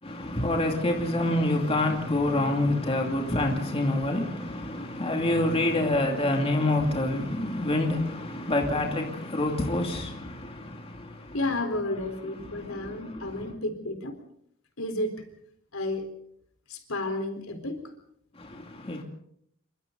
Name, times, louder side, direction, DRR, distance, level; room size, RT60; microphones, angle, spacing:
voice 1, 0.0-11.4 12.4-13.4 18.3-19.0, left 1 dB, 25° left, 2.6 m, -27 dB
voice 2, 11.3-14.2 14.8-15.3 15.7-16.1 16.7-17.9, left 2 dB, 75° left, 4.1 m, -32 dB
27.5 x 24.5 x 4.0 m
head